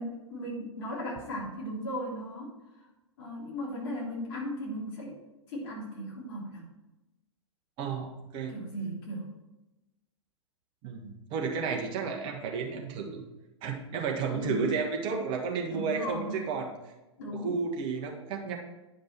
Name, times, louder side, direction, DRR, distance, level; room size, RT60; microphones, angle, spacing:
voice 1, 0.0-2.5 3.2-5.1 5.5-6.6 8.5-9.3 14.3-14.7 15.7-16.4 17.2-17.6, equal, 50° left, -4 dB, 3.2 m, -36 dB
voice 2, 7.8-8.5 10.8-13.2 13.6-16.7 17.3-18.5, right 5 dB, 30° right, 1 dB, 1.5 m, -32 dB
9.8 x 5.2 x 4.5 m, 1.0 s
figure-of-eight pair, 105°, 16 cm